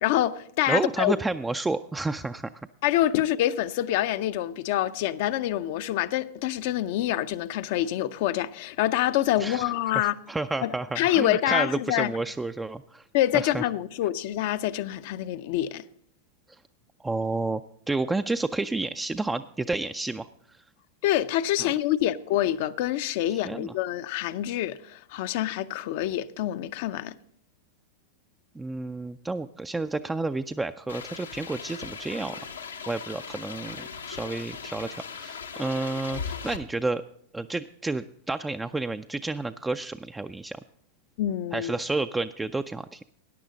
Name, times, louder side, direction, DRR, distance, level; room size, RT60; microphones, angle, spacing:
voice 1, 0.0-1.1 2.8-10.2 10.6-12.1 13.1-15.8 21.0-27.2 41.2-41.7, left 13 dB, 55° left, 0.5 m, -26 dB
voice 2, 0.7-2.5 9.4-13.0 13.3-13.6 16.5-16.6 17.0-17.6 17.9-20.7 21.6-21.7 23.3-23.7 28.6-32.4 32.9-37.0 37.3-40.6 41.5-43.0, right 3 dB, 10° right, 0.3 m, -30 dB
sound 1, 30.9-36.6, left 6 dB, 85° left, 0.9 m, -38 dB
14.5 x 9.9 x 3.9 m
figure-of-eight pair, 95°, 0 cm